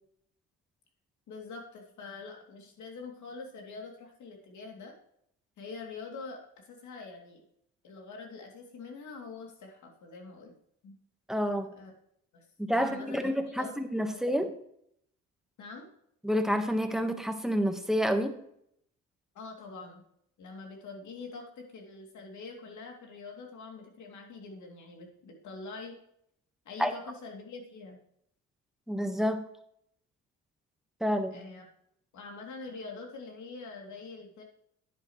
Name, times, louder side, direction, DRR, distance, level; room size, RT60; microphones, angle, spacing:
voice 1, 1.3-4.9 5.6-7.4 7.8-10.5 10.8-11.0 11.8-11.9 12.3-13.8 14.1-14.3 15.6-15.9 19.3-20.0 20.4-26.0 26.6-28.0 31.3-31.7 32.1-34.4, left 4 dB, 75° left, 2 dB, 2.8 m, -45 dB
voice 2, 11.3-11.7 12.6-14.5 16.2-18.4 26.8-26.9 28.9-29.4 31.0-31.4, equal, ahead, 6 dB, 1.3 m, -29 dB
10.5 x 9.5 x 3.1 m, 0.71 s
cardioid pair, 90°, 30 cm